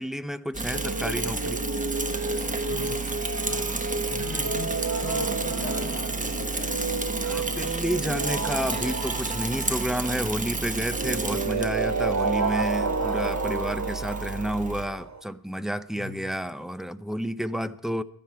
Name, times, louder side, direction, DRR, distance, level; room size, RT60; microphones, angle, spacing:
voice 1, 0.0-1.7 3.5-3.7 7.2-18.0, equal, ahead, 0.5 m, -30 dB
Bicycle / Mechanisms, 0.5-14.8, right 3 dB, 20° right, 1.3 m, -31 dB
sound 1, 0.7-15.2, right 4 dB, 45° right, 1.2 m, -31 dB
voice 2, 2.7-3.1 4.0-4.7 5.0-7.0 16.0-16.3, left 2 dB, 30° left, 5.5 m, -39 dB
16.5 x 12.0 x 4.6 m
wide cardioid pair, 135°, 39 cm